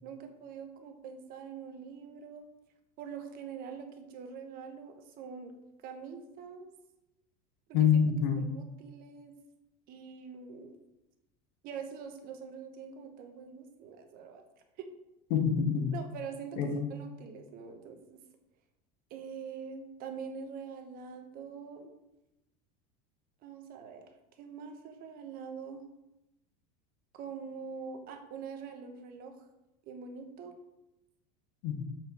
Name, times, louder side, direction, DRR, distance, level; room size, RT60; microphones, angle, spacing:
voice 1, 0.0-2.5 3.0-5.5 5.8-6.7 7.7-7.9 8.4-9.3 9.9-10.7 11.6-14.4 14.8-14.9 15.9-18.2 19.1-21.9 23.4-24.1 24.4-25.8 27.1-29.4 29.8-30.6, right 6 dB, 50° right, 5 dB, 1.1 m, -44 dB
voice 2, 7.7-8.5 15.3-15.9 16.6-16.9 31.6-31.8, left 7 dB, 65° left, 5 dB, 1.3 m, -26 dB
7.5 x 4.5 x 4.3 m, 0.92 s
supercardioid pair, 125°, 20 cm